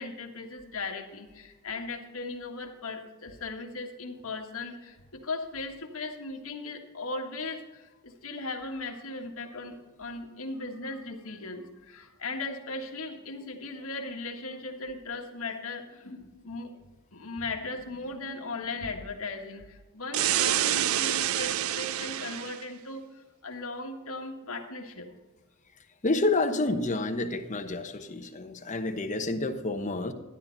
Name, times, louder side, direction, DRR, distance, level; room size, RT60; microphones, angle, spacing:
voice 1, 0.0-7.6 8.0-16.7 17.1-19.6 19.9-23.0 23.4-25.1, left 3 dB, 75° left, 2 dB, 1.7 m, -37 dB
sound 1, 20.1-22.6, right 12 dB, 70° right, 0.4 m, -27 dB
voice 2, 26.0-30.1, left 2 dB, 35° left, 5 dB, 1.1 m, -29 dB
12.5 x 10.5 x 4.0 m, 1.2 s
head